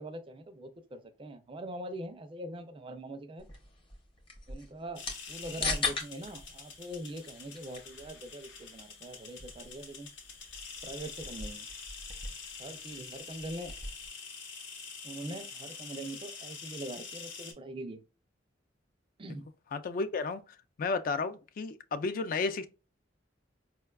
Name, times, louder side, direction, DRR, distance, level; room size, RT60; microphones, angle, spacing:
voice 1, 0.0-3.5 4.5-10.1 10.8-11.7 12.6-13.7 15.0-18.0 19.2-19.5, right 1 dB, 30° right, 0.4 m, -42 dB
sound 1, 3.4-14.1, left 3 dB, 30° left, 0.7 m, -41 dB
sound 2, 5.0-17.5, left 5 dB, 80° left, 0.8 m, -46 dB
voice 2, 19.7-20.4 20.8-22.7, left 4 dB, 50° left, 0.3 m, -32 dB
4.5 x 2.2 x 2.2 m
head